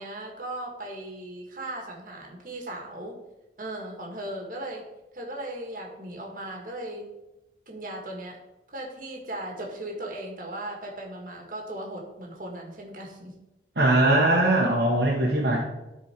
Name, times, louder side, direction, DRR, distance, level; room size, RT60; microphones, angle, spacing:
voice 1, 0.0-3.2 3.6-4.8 5.1-7.1 7.7-8.4 8.7-13.3, right 1 dB, 45° right, 0 dB, 1.8 m, -37 dB
voice 2, 13.8-15.6, right 1 dB, 60° right, -4 dB, 1.3 m, -21 dB
13.0 x 4.5 x 4.5 m, 0.99 s
head